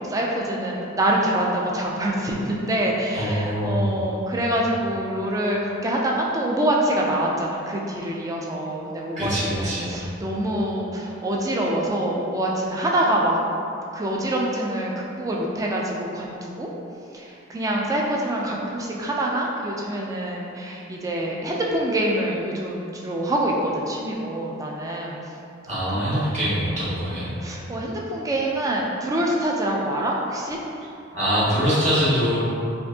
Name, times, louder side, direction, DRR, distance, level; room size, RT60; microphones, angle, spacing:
voice 1, 0.0-13.4 13.9-16.7 17.1-25.2 25.9-26.4 27.4-30.6, right 1 dB, 15° right, -2 dB, 0.3 m, -25 dB
voice 2, 3.1-3.9 9.1-10.0 25.6-27.3 31.1-32.4, equal, 40° right, -10 dB, 1.3 m, -23 dB
4.3 x 2.6 x 2.7 m, 2.6 s
head